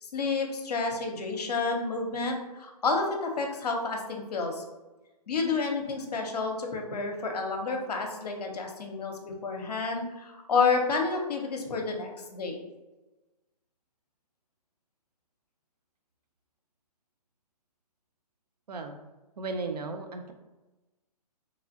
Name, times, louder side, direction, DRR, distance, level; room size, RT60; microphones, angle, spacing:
voice 1, 0.0-4.6 5.3-12.6, left 4 dB, 70° left, 2 dB, 0.7 m, -30 dB
voice 2, 19.4-20.3, right 3 dB, 75° right, 5 dB, 0.5 m, -35 dB
2.9 x 2.4 x 2.6 m, 1.1 s
hypercardioid pair, 135°, 21 cm